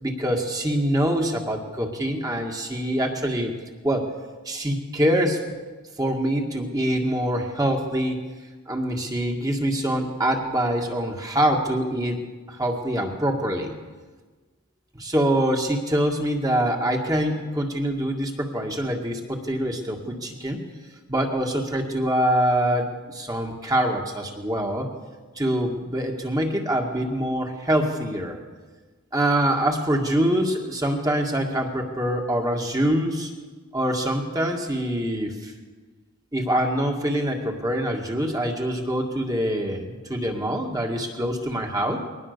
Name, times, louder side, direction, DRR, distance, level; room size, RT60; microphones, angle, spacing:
voice 1, 0.0-3.5 3.8-4.1 4.5-5.4 6.0-8.2 8.7-12.2 12.5-13.7 14.9-20.6 21.1-24.9 25.4-28.4 29.1-33.3 33.7-35.5 36.3-42.0, right 1 dB, 15° right, 2 dB, 2.1 m, -24 dB
22.0 x 19.0 x 6.9 m, 1.4 s
head